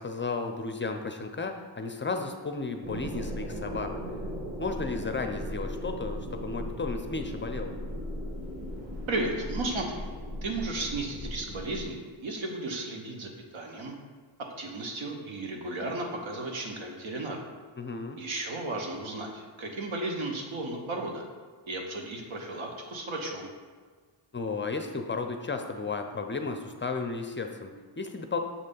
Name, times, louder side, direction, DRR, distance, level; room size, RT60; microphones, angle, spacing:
voice 1, 0.0-3.9 4.6-7.7 17.8-18.2 24.3-28.4, left 4 dB, 25° left, 5 dB, 0.4 m, -34 dB
sound 1, 2.8-11.8, equal, 30° right, 1.9 m, -37 dB
voice 2, 9.1-10.0 10.4-13.9 14.6-17.4 18.2-21.2 21.7-23.5, right 2 dB, 80° right, 2 dB, 1.2 m, -34 dB
6.9 x 3.2 x 5.3 m, 1.6 s
cardioid pair, 85°, 47 cm